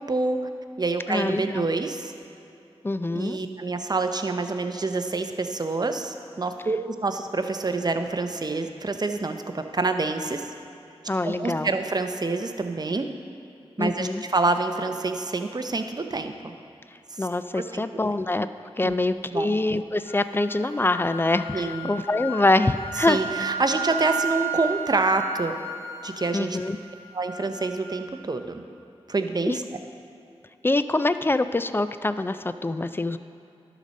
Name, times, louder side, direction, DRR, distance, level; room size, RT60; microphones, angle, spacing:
voice 1, 0.1-0.4 0.8-2.1 3.1-10.5 11.2-13.1 13.8-16.5 17.1-17.3 17.6-17.8 18.8-18.9 19.3-19.5 21.5-21.9 23.0-25.6 26.0-26.6 27.1-28.6 29.1-29.6, right 3 dB, 40° right, 7 dB, 0.6 m, -27 dB
voice 2, 1.1-1.7 2.8-3.4 11.1-11.8 13.8-14.2 17.2-18.5 18.8-23.2 26.3-26.8 29.5-29.6 30.6-33.2, left 2 dB, 20° left, 12 dB, 0.3 m, -24 dB
sound 1, 20.1-28.1, right 5 dB, 25° right, 1.7 m, -34 dB
11.5 x 4.1 x 6.4 m, 2.8 s
wide cardioid pair, 55°, 11 cm